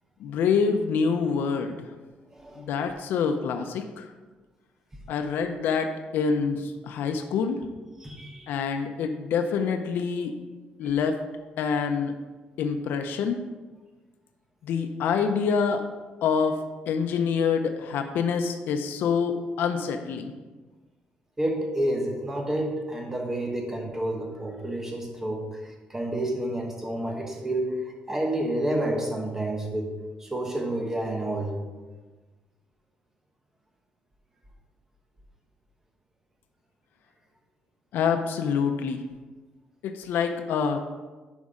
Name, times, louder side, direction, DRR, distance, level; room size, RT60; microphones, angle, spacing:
voice 1, 0.2-1.8 2.6-4.1 5.1-7.6 8.5-10.3 10.8-11.2 11.6-12.1 12.6-13.4 14.6-15.8 16.2-16.6 16.9-20.3 37.9-39.0 39.8-40.8, left 6 dB, 80° left, 6 dB, 0.7 m, -26 dB
voice 2, 2.3-2.7 8.0-8.5 21.4-25.4 25.9-27.8 28.1-29.9 30.2-31.6, right 1 dB, 15° right, 2 dB, 1.2 m, -29 dB
11.0 x 5.3 x 3.7 m, 1.3 s
cardioid pair, 160°, 3 cm